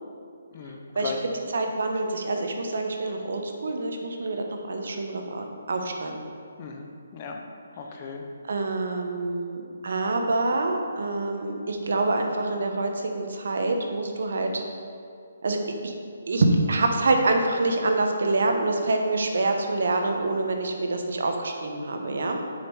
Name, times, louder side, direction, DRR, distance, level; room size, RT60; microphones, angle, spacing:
voice 1, 0.5-1.2 6.6-7.4 7.8-8.2, left 5 dB, 25° left, 2 dB, 0.6 m, -36 dB
voice 2, 1.5-6.2 8.4-14.6 15.4-15.9 16.3-22.4, right 2 dB, 65° right, 3 dB, 1.0 m, -26 dB
7.5 x 5.5 x 4.7 m, 2.3 s
hypercardioid pair, 170°, 0 cm